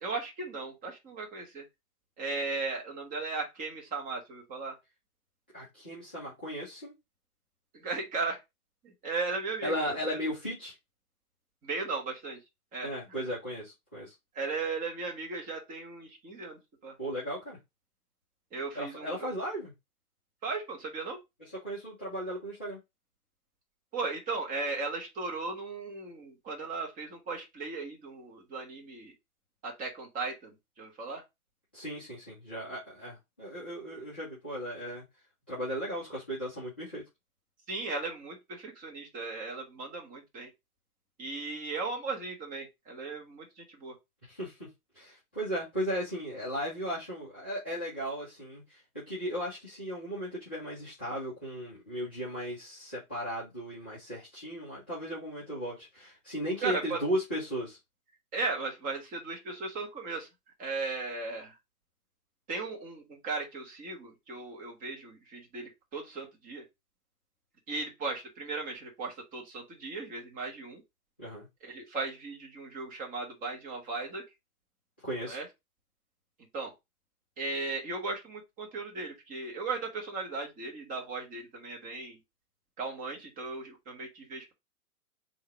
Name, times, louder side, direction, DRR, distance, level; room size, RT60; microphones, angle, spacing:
voice 1, 0.0-1.6 2.2-4.7 7.7-8.4 8.8-10.2 11.6-12.4 12.7-12.9 14.3-16.9 18.5-19.3 20.4-21.2 23.9-29.1 29.6-31.2 37.7-40.5 41.2-44.0 56.6-57.0 58.3-60.3 60.6-61.6 62.5-66.6 67.7-70.8 71.6-74.2 75.3-75.5 76.5-76.7 77.4-82.2 82.8-84.5, right 3 dB, 20° right, 1.3 m, -36 dB
voice 2, 5.5-6.9 9.6-10.7 12.8-14.1 17.0-17.6 18.7-19.7 21.6-22.8 31.7-35.0 35.5-37.0 44.3-44.7 44.9-57.8 71.2-71.5 75.0-75.4, equal, 10° left, 0.3 m, -36 dB
3.8 x 2.7 x 4.5 m
hypercardioid pair, 135°, 44 cm